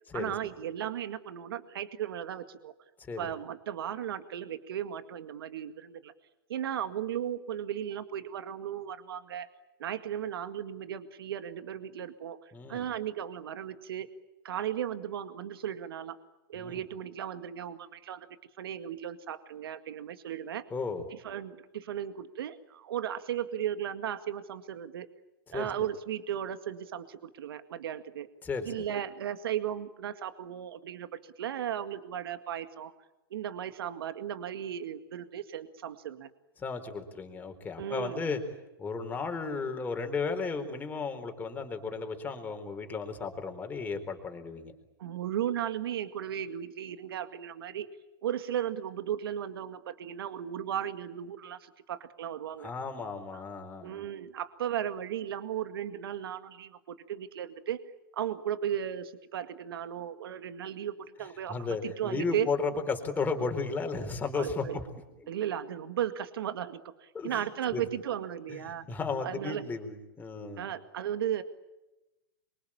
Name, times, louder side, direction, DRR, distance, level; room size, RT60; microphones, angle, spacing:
voice 1, 0.1-2.7 3.2-6.1 6.5-9.5 9.8-14.1 14.4-16.2 16.5-18.3 18.6-20.6 21.1-25.1 25.5-28.3 28.6-32.9 33.3-36.3 37.8-38.3 45.0-47.9 48.2-52.7 53.3-53.4 53.8-57.8 58.1-61.5 62.0-62.5 64.3-64.8 65.3-68.9 69.2-69.7 70.6-71.4, right 10 dB, 75° right, 10 dB, 2.0 m, -36 dB
voice 2, 3.0-3.3 12.5-12.9 16.5-16.8 20.7-21.0 25.5-25.7 28.4-28.8 36.6-38.4 38.8-44.7 52.6-54.0 61.5-64.8 65.2-65.3 67.1-67.4 67.7-67.8 68.5-68.6 68.9-70.6, left 4 dB, 15° left, 5 dB, 4.2 m, -34 dB
27.0 x 24.5 x 8.8 m, 0.99 s
hypercardioid pair, 140°, 12 cm